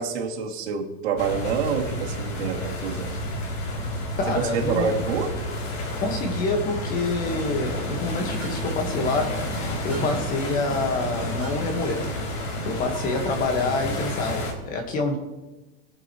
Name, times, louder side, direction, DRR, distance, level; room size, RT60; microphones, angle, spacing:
voice 1, 0.0-3.1 4.3-5.3, right 6 dB, 85° right, 2.6 m, -27 dB
sound 1, 1.2-14.5, left 1 dB, 50° left, 3.3 m, -30 dB
voice 2, 4.2-4.9 6.0-12.1 12.6-15.2, left 3 dB, 25° left, 1.5 m, -27 dB
sound 2, 7.3-13.3, right 3 dB, 5° right, 3.4 m, -39 dB
23.0 x 7.7 x 3.1 m
supercardioid pair, 170°, 32 cm